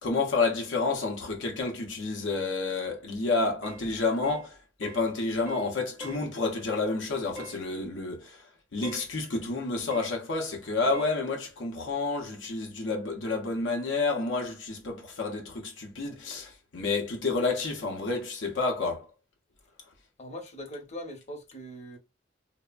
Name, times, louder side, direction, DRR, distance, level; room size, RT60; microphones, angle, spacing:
voice 1, 0.0-19.1, left 3 dB, 75° left, 0.7 m, -30 dB
sound 1, 3.6-3.9 4.2-4.5 4.8-5.1 5.5-5.7 6.0-6.3 7.4-7.6 8.8-9.1 9.9-10.2 10.9-11.2, right 1 dB, 15° right, 0.6 m, -42 dB
voice 2, 20.2-22.0, equal, 35° left, 0.8 m, -41 dB
3.2 x 2.0 x 2.3 m
head